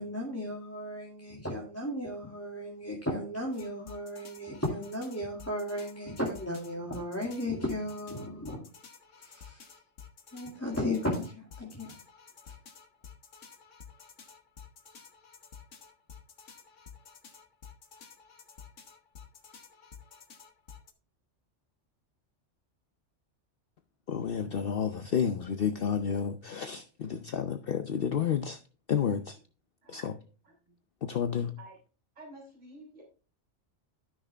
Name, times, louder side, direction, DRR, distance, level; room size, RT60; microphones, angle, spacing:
voice 1, 0.0-8.6 9.2-9.7 10.3-11.9 12.4-12.5, left 1 dB, 10° left, 2.2 m, -35 dB
sound 1, 3.5-20.9, left 6 dB, 80° left, 1.6 m, -52 dB
voice 2, 24.1-28.6 28.9-29.4 29.9-30.2 31.0-31.5, left 7 dB, 55° left, 0.9 m, -30 dB
voice 3, 32.2-33.0, right 2 dB, 35° right, 3.9 m, -50 dB
13.0 x 6.4 x 3.4 m
omnidirectional pair, 1.2 m